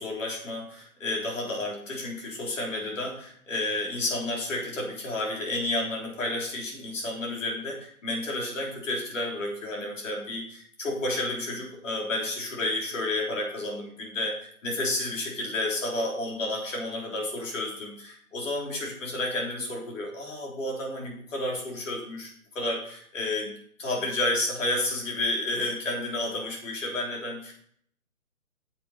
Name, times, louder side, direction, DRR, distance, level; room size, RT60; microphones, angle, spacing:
voice 1, 0.0-23.5 23.8-27.5, left 2 dB, 60° left, -1 dB, 3.8 m, -31 dB
9.2 x 7.2 x 4.3 m, 0.63 s
hypercardioid pair, 155°, 43 cm